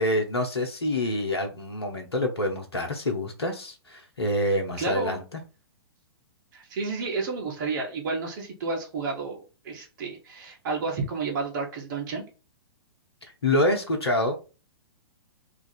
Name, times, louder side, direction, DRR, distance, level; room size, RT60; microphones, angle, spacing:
voice 1, 0.0-5.4 13.4-14.3, left 1 dB, 75° left, 3 dB, 0.9 m, -26 dB
voice 2, 4.8-5.2 6.5-12.2, right 4 dB, 50° right, 0 dB, 1.2 m, -31 dB
2.7 x 2.5 x 4.2 m, 0.33 s
figure-of-eight pair, 110°, 13 cm